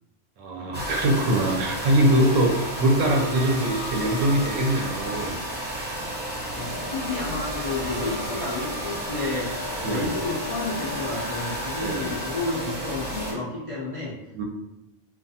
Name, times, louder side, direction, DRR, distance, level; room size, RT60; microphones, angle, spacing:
voice 1, 0.4-5.3 9.8-10.1 11.8-12.0 14.3-14.4, right 1 dB, 90° right, 1 dB, 0.9 m, -22 dB
sound 1, 0.7-13.3, equal, 15° right, 0.4 m, -32 dB
voice 2, 6.5-14.1, left 2 dB, 60° left, -8 dB, 0.3 m, -31 dB
2.4 x 2.4 x 2.6 m, 0.96 s
omnidirectional pair, 1.3 m